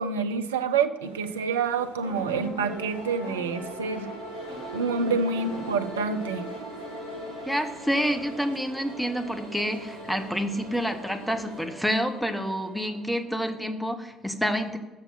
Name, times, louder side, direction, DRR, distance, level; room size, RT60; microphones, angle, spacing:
voice 1, 0.0-4.1 4.7-6.5, right 5 dB, 75° right, 9 dB, 0.4 m, -27 dB
sound 1, 1.0-11.7, right 2 dB, 90° left, 0.7 m, -44 dB
sound 2, 2.0-11.4, left 1 dB, 65° left, 2.4 m, -41 dB
sound 3, 3.8-13.9, right 3 dB, 55° right, 1.1 m, -48 dB
voice 2, 7.5-14.8, equal, ahead, 6 dB, 0.9 m, -28 dB
6.9 x 5.9 x 5.7 m, 1.2 s
figure-of-eight pair, 50°, 0 cm